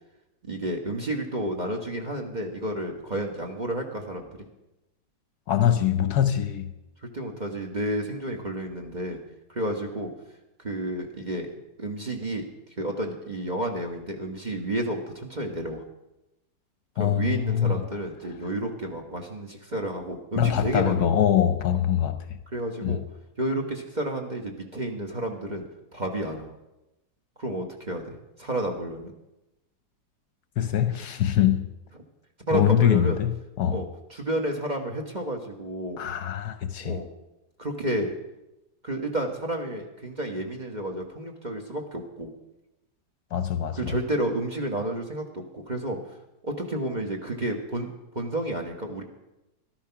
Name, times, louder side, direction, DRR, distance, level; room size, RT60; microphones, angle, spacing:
voice 1, 0.4-4.3 7.0-9.2 9.5-10.1 10.6-11.5 11.8-12.5 12.8-15.8 16.9-21.1 22.5-23.0 23.4-25.6 25.9-26.5 27.4-29.1 32.4-33.2 33.7-36.0 36.8-37.1 37.6-38.1 38.8-42.3 43.7-46.0 46.4-49.0, right 1 dB, 25° right, 1.3 m, -31 dB
voice 2, 5.5-6.7 17.0-17.8 20.4-22.4 22.8-23.0 30.6-31.7 32.5-33.8 36.0-37.0 43.3-44.0, left 10 dB, 65° left, 1.1 m, -23 dB
13.5 x 12.0 x 5.8 m
omnidirectional pair, 2.0 m